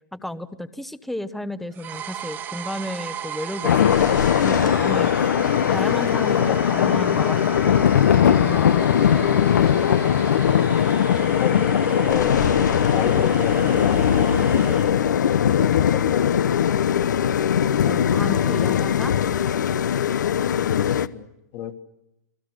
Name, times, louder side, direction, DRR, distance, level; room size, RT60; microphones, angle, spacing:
voice 1, 0.1-5.3 5.6-8.0 8.4-8.8 17.8-19.1, left 1 dB, ahead, 12 dB, 0.9 m, -33 dB
sound 1, 1.7-14.9, right 9 dB, 20° right, 1.4 m, -35 dB
sound 2, 3.6-21.1, left 9 dB, 80° left, 1.1 m, -20 dB
voice 2, 11.4-12.5 12.9-16.2 21.1-21.3 21.5-21.8, left 11 dB, 35° left, 8 dB, 1.9 m, -32 dB
29.5 x 22.0 x 6.5 m, 0.87 s
hypercardioid pair, 155°, 10 cm